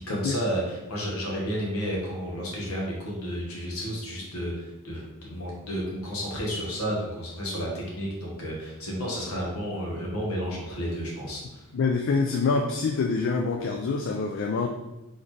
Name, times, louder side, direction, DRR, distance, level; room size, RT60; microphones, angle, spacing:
voice 1, 0.1-11.6, equal, 75° left, -3 dB, 1.4 m, -32 dB
voice 2, 11.7-14.7, left 4 dB, 55° left, 3 dB, 0.3 m, -26 dB
4.2 x 3.6 x 3.2 m, 0.99 s
head